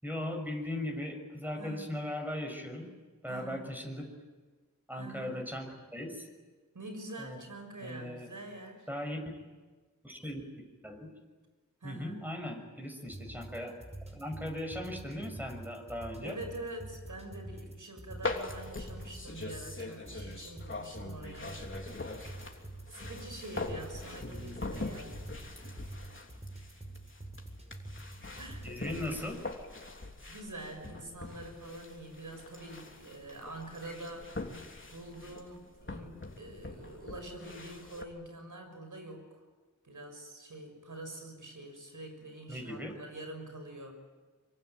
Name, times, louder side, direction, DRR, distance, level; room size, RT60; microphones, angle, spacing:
voice 1, 0.0-2.9 3.2-4.1 4.9-6.3 7.2-7.4 7.8-8.3 8.9-9.2 10.0-11.1 11.8-13.8 14.1-16.3 24.2-24.9 28.6-29.4 42.5-42.9, left 1 dB, 5° right, 3 dB, 6.2 m, -38 dB
voice 2, 1.6-1.9 3.3-3.6 4.9-5.4 6.7-8.9 11.8-12.3 16.2-21.5 22.9-25.3 26.3-26.4 26.8-27.0 28.4-28.7 29.8-30.0 30.3-34.4 34.8-39.4 39.8-43.9, right 1 dB, 80° right, 5 dB, 6.5 m, -45 dB
sound 1, 13.1-29.1, right 1 dB, 20° right, 5.6 m, -47 dB
sound 2, 18.2-38.0, left 2 dB, 40° left, 3.3 m, -43 dB
24.5 x 24.5 x 9.5 m, 1.3 s
wide cardioid pair, 60°, 30 cm